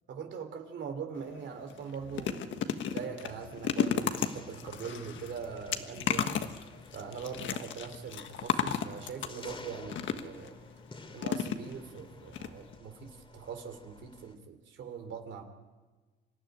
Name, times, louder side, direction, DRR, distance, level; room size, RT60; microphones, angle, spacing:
voice 1, 0.1-6.4 6.9-10.5 11.1-15.4, right 6 dB, 70° right, 6 dB, 2.9 m, -42 dB
sound 1, 1.2-1.3 1.7-10.5 11.2-12.0 12.3-12.5 12.7-12.8, left 8 dB, 75° left, 1.5 m, -34 dB
sound 2, 3.3-14.4, left 3 dB, 25° left, 2.4 m, -52 dB
26.0 x 13.0 x 9.9 m, 1.3 s
cardioid pair, 90°, 20 cm